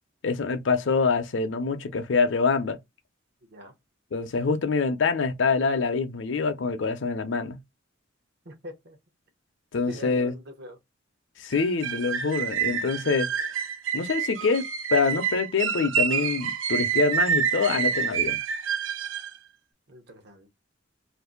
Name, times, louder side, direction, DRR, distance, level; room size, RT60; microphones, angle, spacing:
voice 1, 0.2-2.8 4.1-7.6 9.7-10.3 11.4-13.3 13.9-18.4, left 4 dB, 70° left, 0.5 m, -25 dB
voice 2, 8.4-9.0 9.9-10.8 19.9-20.5, equal, 60° right, 0.8 m, -43 dB
sound 1, 11.5-19.4, right 7 dB, 90° right, 0.5 m, -28 dB
2.6 x 2.5 x 3.7 m
head